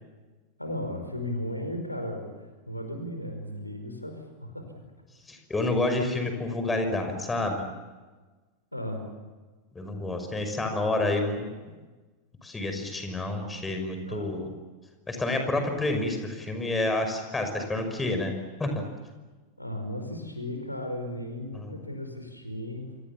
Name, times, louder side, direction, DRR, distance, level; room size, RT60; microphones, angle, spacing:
voice 1, 0.6-4.7 8.7-9.1 14.1-14.4 19.6-22.9, left 1 dB, 85° left, 5 dB, 5.2 m, -35 dB
voice 2, 5.3-7.7 9.7-11.7 12.4-14.5 15.1-18.3 18.6-18.8 21.5-21.7, left 2 dB, 10° left, 6 dB, 5.7 m, -29 dB
28.5 x 27.0 x 7.4 m, 1.3 s
figure-of-eight pair, 90°, 0 cm